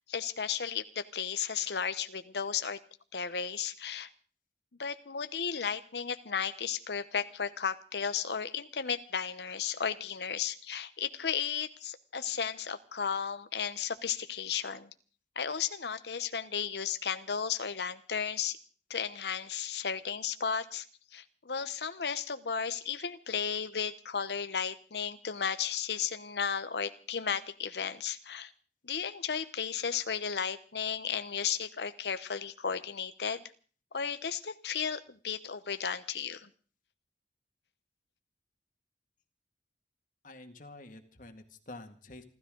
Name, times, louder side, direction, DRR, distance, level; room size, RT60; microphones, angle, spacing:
voice 1, 0.1-2.8 3.1-4.1 4.8-14.9 15.4-18.6 18.9-20.8 21.1-28.5 28.8-33.4 33.9-36.5, left 7 dB, 70° left, 11 dB, 0.9 m, -34 dB
voice 2, 40.2-42.2, left 2 dB, 50° left, 6 dB, 2.1 m, -48 dB
29.0 x 13.0 x 3.8 m, 0.41 s
head